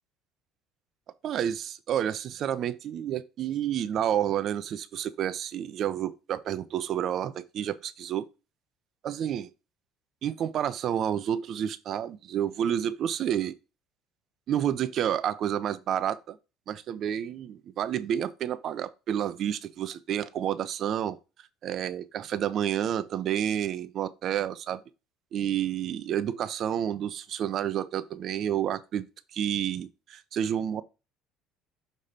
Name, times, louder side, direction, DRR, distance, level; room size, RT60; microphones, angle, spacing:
voice 1, 1.2-8.2 9.0-9.5 10.2-13.6 14.5-16.4 16.7-21.2 21.6-24.8 25.3-29.0 29.3-30.8, right 10 dB, 55° right, 0.6 m, -30 dB
6.7 x 3.1 x 5.6 m
supercardioid pair, 100°, 0 cm